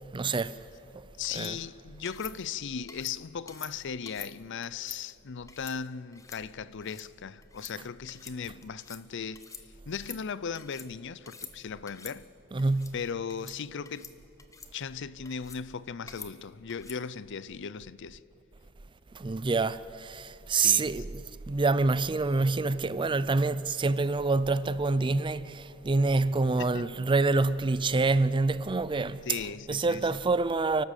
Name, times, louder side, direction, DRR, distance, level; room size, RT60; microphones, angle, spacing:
voice 1, 0.1-0.6 1.3-1.5 12.5-13.0 19.1-21.1 21.5-29.3 29.7-30.8, right 3 dB, 25° right, 0.4 m, -26 dB
voice 2, 1.2-9.4 9.9-12.3 12.9-14.1 14.7-18.2 20.6-21.0 26.6-26.8 29.2-30.1, left 6 dB, 60° left, 0.5 m, -37 dB
sound 1, 1.2-1.5 2.1-2.3 2.9-3.2 3.5-3.7 4.1-4.3 4.6-5.0 5.5-5.8 6.1-6.4 6.7-7.1 7.4-7.7 8.1-8.4 8.6-9.0 9.4-9.6 9.9-10.9 11.2-11.5 11.9-12.2 12.6-12.9 13.3-13.6 13.9-14.1 14.4-14.7 15.3-15.6 16.1-16.3 16.7-17.0, left 5 dB, 15° left, 1.1 m, -46 dB
29.0 x 12.5 x 8.3 m
head